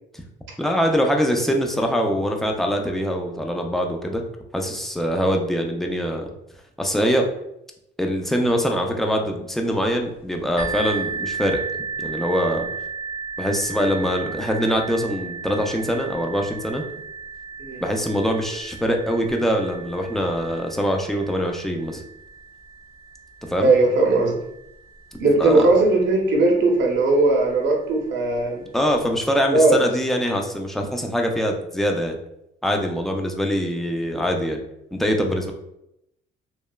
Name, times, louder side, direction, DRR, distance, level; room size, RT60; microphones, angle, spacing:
voice 1, 0.6-4.2 4.5-6.3 6.8-7.3 8.0-11.6 12.0-12.7 13.4-16.8 17.8-22.0 23.5-23.7 25.4-25.7 28.7-32.2 32.6-34.6 34.9-35.5, equal, ahead, 2 dB, 0.4 m, -23 dB
sound 1, 10.6-26.1 26.9-27.0 27.5-27.6, right 5 dB, 50° left, 0.9 m, -35 dB
voice 2, 23.6-24.4 25.2-28.6 29.5-29.8, right 2 dB, 65° right, -1 dB, 0.6 m, -18 dB
3.0 x 2.2 x 2.2 m, 0.81 s
cardioid pair, 90°, 20 cm